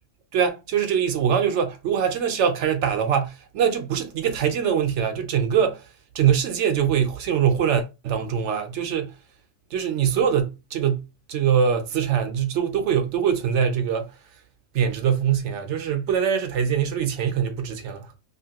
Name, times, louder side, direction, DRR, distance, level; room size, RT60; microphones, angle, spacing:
voice 1, 0.3-5.9 6.1-9.1 9.7-14.1 14.7-18.1, right 8 dB, 75° right, 0.9 m, -23 dB
2.8 x 2.7 x 2.7 m
omnidirectional pair, 1.2 m